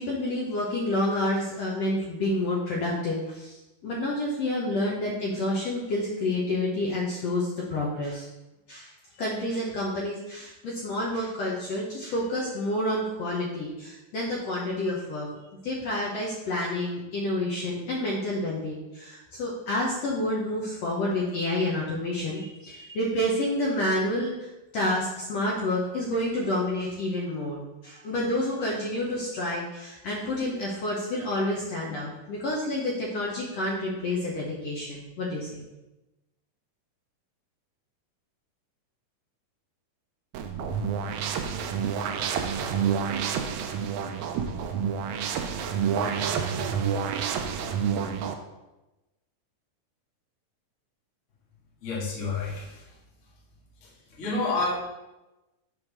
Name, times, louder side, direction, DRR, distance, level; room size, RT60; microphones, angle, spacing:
voice 1, 0.0-8.3 8.7-15.3 15.6-35.6, left 1 dB, 65° left, -4 dB, 1.8 m, -29 dB
sound 1, 40.3-48.3, right 7 dB, 85° right, 1.7 m, -28 dB
voice 2, 51.8-52.9 53.8-54.7, left 3 dB, 35° left, -6 dB, 1.2 m, -30 dB
6.2 x 3.5 x 5.9 m, 1.0 s
omnidirectional pair, 3.9 m